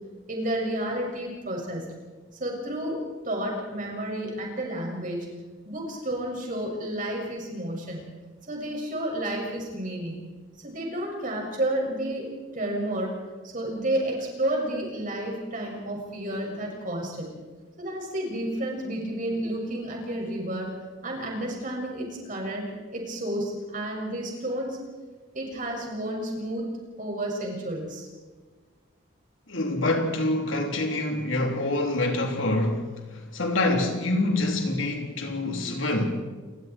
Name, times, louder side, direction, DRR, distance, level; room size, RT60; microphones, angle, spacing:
voice 1, 0.3-1.8 2.4-5.3 5.6-8.0 8.5-10.2 10.6-12.3 12.5-13.1 13.4-17.3 17.8-20.7 21.0-22.7 22.9-24.8 25.3-26.6 27.0-28.1, right 1 dB, 45° right, 6.7 m, -31 dB
voice 2, 29.5-36.1, left 2 dB, 85° left, 3.7 m, -26 dB
28.5 x 22.0 x 4.6 m
head